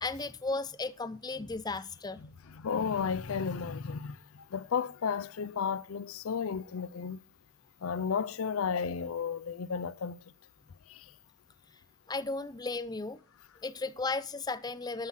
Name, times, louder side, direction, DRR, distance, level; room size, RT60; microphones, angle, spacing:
voice 1, 0.0-2.2 12.1-13.2 13.6-15.1, left 3 dB, 20° left, 0.5 m, -35 dB
voice 2, 2.2-7.2 7.8-10.2 10.9-11.1, left 6 dB, 70° left, 0.5 m, -33 dB
13.0 x 6.2 x 5.7 m
head